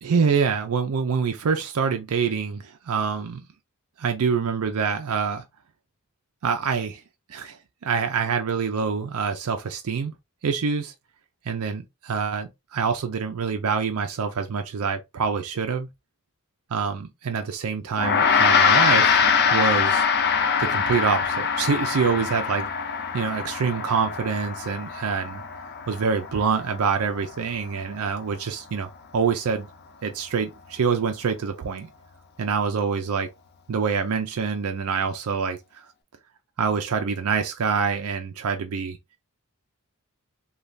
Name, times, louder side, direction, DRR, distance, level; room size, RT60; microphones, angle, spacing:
voice 1, 0.0-3.4 4.0-5.4 6.4-7.0 7.3-7.6 7.8-10.1 10.4-10.9 11.5-15.9 16.7-20.1 20.6-22.7 23.1-25.4 25.9-28.9 29.1-29.7 30.0-31.9 32.4-33.3 33.7-35.8 36.6-39.0, right 5 dB, 75° right, 0.4 m, -26 dB
Gong, 18.0-27.5, left 6 dB, 45° left, 0.5 m, -23 dB
3.2 x 2.3 x 2.5 m
head